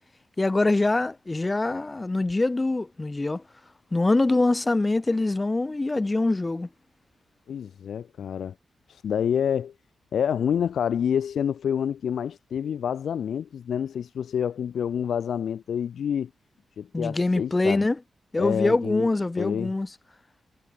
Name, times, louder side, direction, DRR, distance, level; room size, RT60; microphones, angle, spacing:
voice 1, 0.4-3.4 3.9-6.7 16.9-18.0 18.3-19.9, left 2 dB, 25° left, 0.5 m, -24 dB
voice 2, 7.5-8.5 8.9-9.7 10.1-16.3 16.8-17.8 18.4-19.1 19.4-19.7, left 8 dB, 80° left, 2.4 m, -28 dB
cardioid pair, 65°, 0 cm